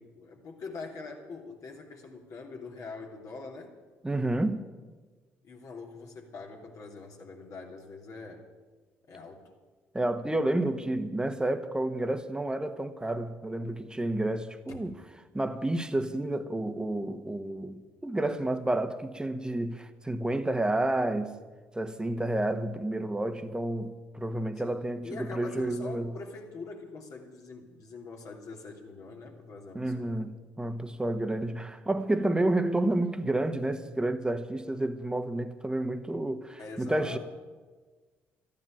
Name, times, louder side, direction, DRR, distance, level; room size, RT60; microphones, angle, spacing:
voice 1, 0.0-3.8 5.4-8.5 9.1-9.5 24.6-30.1 36.6-37.2, left 4 dB, 55° left, 3.0 m, -43 dB
voice 2, 4.0-4.7 9.9-15.0 15.3-21.3 21.7-26.1 29.7-37.2, right 1 dB, 10° right, 1.4 m, -30 dB
13.5 x 10.5 x 8.9 m
hypercardioid pair, 55°, 7 cm